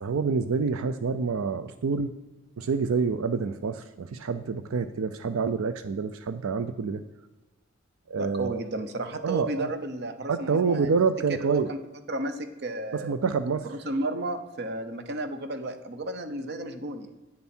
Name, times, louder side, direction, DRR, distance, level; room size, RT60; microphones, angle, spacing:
voice 1, 0.0-2.1 2.6-7.0 8.1-8.6 9.2-9.7 10.3-11.7 13.0-13.7, right 5 dB, 90° right, 11 dB, 0.5 m, -27 dB
voice 2, 8.2-10.9 11.3-11.8 12.1-13.1 13.6-17.1, right 2 dB, 55° right, 9 dB, 0.8 m, -33 dB
9.0 x 7.0 x 4.4 m, 1.1 s
head